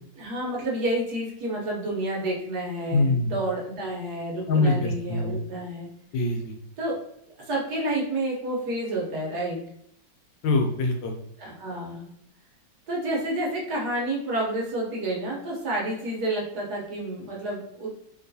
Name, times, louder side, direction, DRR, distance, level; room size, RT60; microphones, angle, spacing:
voice 1, 0.1-5.9 6.8-7.0 7.4-9.6 11.4-12.1 12.9-17.9, right 1 dB, 65° right, -3 dB, 1.3 m, -29 dB
voice 2, 2.9-3.3 4.5-5.4 6.1-6.6 10.4-11.1, left 2 dB, 75° left, 2 dB, 1.3 m, -23 dB
3.0 x 3.0 x 2.6 m, 0.71 s
omnidirectional pair, 2.1 m